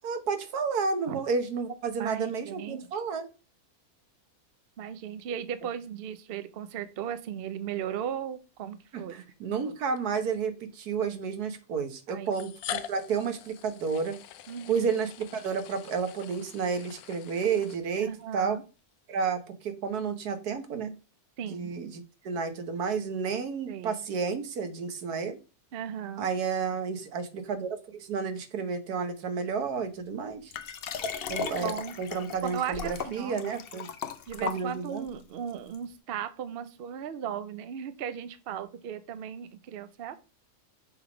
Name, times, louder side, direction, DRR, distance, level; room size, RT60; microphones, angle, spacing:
voice 1, 0.0-3.3 8.9-14.2 14.7-18.6 19.1-20.9 21.5-25.4 26.2-30.5 31.3-31.7 32.0-33.9 34.4-35.1, right 5 dB, 80° right, 8 dB, 1.5 m, -31 dB
voice 2, 2.0-3.0 4.8-9.3 12.1-12.3 14.5-14.9 18.0-18.6 21.4-21.8 23.7-24.0 25.7-26.3 31.4-32.0 32.4-33.4 34.3-40.2, right 9 dB, 60° right, 11 dB, 0.6 m, -37 dB
sound 1, 8.8-8.9 10.0-10.1 11.2-11.3 12.3-18.2, left 10 dB, 75° left, 1.0 m, -43 dB
Liquid, 30.5-35.1 35.7-35.8, left 6 dB, 60° left, 0.6 m, -37 dB
6.4 x 3.5 x 4.9 m, 0.32 s
omnidirectional pair, 1.6 m